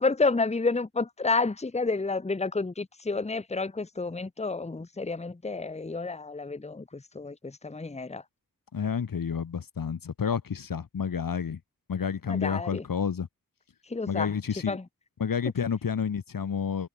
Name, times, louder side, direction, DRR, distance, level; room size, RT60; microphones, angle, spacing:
voice 1, 0.0-8.2 12.3-12.8 13.9-14.3 14.7-14.8, left 3 dB, 20° left, 0.9 m, -30 dB
voice 2, 8.7-11.6 11.9-13.3 14.1-14.8 15.2-16.9, left 7 dB, 70° left, 1.0 m, -30 dB
wide cardioid pair, 75°, 34 cm